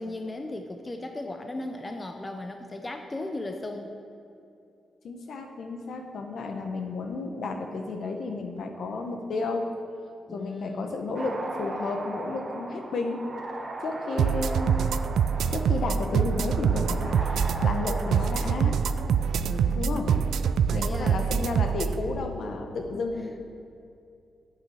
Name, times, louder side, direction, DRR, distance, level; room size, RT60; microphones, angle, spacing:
voice 1, 0.0-4.0 10.3-11.0 19.4-20.3 20.7-21.3 22.9-23.0, left 2 dB, 20° left, 4 dB, 0.6 m, -36 dB
voice 2, 5.0-9.7 10.3-13.2 13.8-14.8 15.5-18.8 19.7-20.1 20.7-23.4, left 3 dB, 65° left, 4 dB, 1.2 m, -32 dB
sound 1, 11.1-19.8, right 2 dB, 30° right, 1.3 m, -39 dB
sound 2, 14.2-21.9, right 7 dB, 90° right, 0.3 m, -25 dB
9.1 x 8.2 x 6.5 m, 2.6 s
wide cardioid pair, 145°, 0 cm